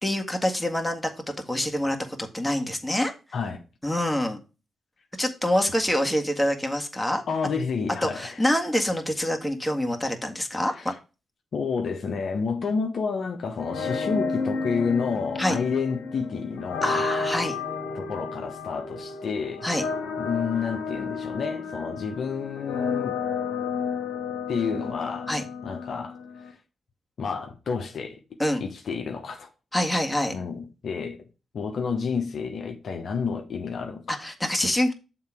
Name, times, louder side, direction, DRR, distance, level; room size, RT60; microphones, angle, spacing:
voice 1, 0.0-1.1 1.5-3.1 3.8-4.4 5.2-7.2 8.0-10.9 15.4-15.6 16.8-17.6 19.6-19.9 25.3-25.4 28.4-28.6 29.7-30.3 34.1-34.9, left 1 dB, 10° left, 1.8 m, -26 dB
voice 2, 7.3-8.4 11.5-17.0 17.9-19.7 20.2-23.2 24.5-25.3 25.6-26.2 27.2-28.2 28.6-29.5 30.3-31.2 31.5-34.2, left 5 dB, 65° left, 1.1 m, -30 dB
sound 1, 13.6-26.5, left 5 dB, 85° left, 1.2 m, -32 dB
7.2 x 3.9 x 6.0 m
supercardioid pair, 45°, 0 cm